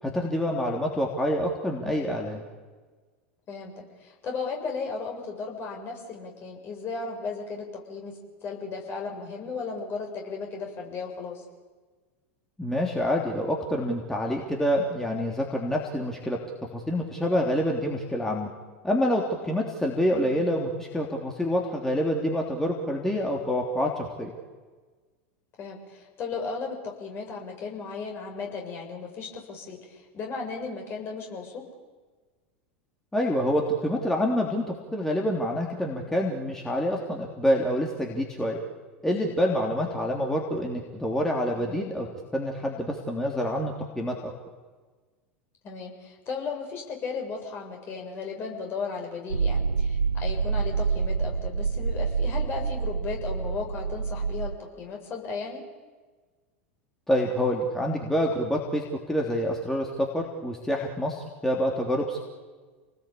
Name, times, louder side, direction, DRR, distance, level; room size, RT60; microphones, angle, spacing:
voice 1, 0.0-2.4 12.6-18.5 18.8-24.3 33.1-38.6 39.0-42.1 42.3-44.3 57.1-62.2, equal, 5° left, -1 dB, 3.3 m, -27 dB
voice 2, 3.5-11.4 25.6-31.6 41.5-41.9 45.6-55.6, left 4 dB, 35° left, 1 dB, 6.9 m, -35 dB
sound 1, 49.3-54.6, right 5 dB, 80° right, 0.9 m, -27 dB
29.0 x 19.5 x 8.6 m, 1.4 s
figure-of-eight pair, 85°, 7 cm